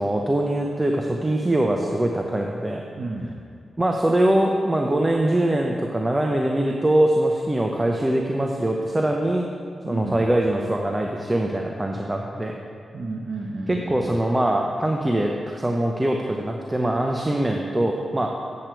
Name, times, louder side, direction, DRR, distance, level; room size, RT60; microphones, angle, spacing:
voice 1, 0.0-2.8 3.8-9.5 9.9-12.5 13.7-18.3, right 1 dB, 20° right, 1 dB, 0.7 m, -22 dB
voice 2, 2.9-3.3 9.8-10.3 12.9-14.1, right 2 dB, 60° right, -2 dB, 0.8 m, -31 dB
8.5 x 7.5 x 4.6 m, 2.3 s
cardioid pair, 65°, 0 cm